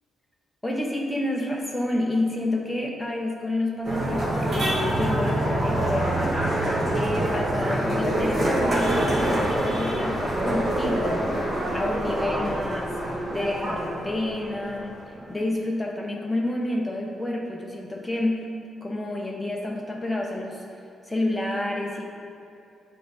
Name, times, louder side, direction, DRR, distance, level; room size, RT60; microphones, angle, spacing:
voice 1, 0.6-6.3 6.6-11.4 11.7-14.9 15.3-18.5 18.8-20.6 21.0-22.0, left 1 dB, 5° left, -2 dB, 0.7 m, -29 dB
sound 1, 3.8-15.4, right 1 dB, 20° right, 1.4 m, -25 dB
9.1 x 3.7 x 4.1 m, 2.7 s
wide cardioid pair, 170°, 0 cm